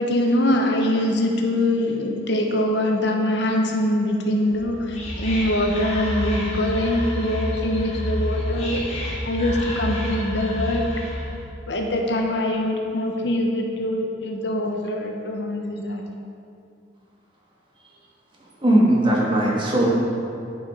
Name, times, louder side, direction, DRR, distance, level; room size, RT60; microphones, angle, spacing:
voice 1, 0.0-9.0 9.2-10.9 11.7-16.0, left 1 dB, 65° left, 2 dB, 0.8 m, -23 dB
Whispering, 4.5-11.4, equal, 35° left, 1.3 m, -29 dB
voice 2, 18.6-19.9, right 1 dB, 25° right, -4 dB, 1.4 m, -18 dB
9.6 x 5.5 x 4.8 m, 2.5 s
head